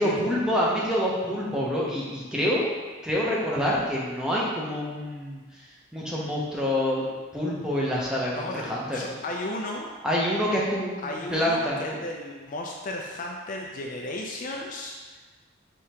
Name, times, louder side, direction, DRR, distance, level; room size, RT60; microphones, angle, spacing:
voice 1, 0.0-2.7 3.0-5.4 5.9-7.1 7.3-8.4 8.7-9.1 10.0-12.0, equal, 5° right, -5 dB, 0.7 m, -26 dB
voice 2, 8.3-9.9 11.0-15.2, left 1 dB, 40° left, 0 dB, 0.4 m, -35 dB
4.9 x 3.4 x 2.9 m, 1.4 s
head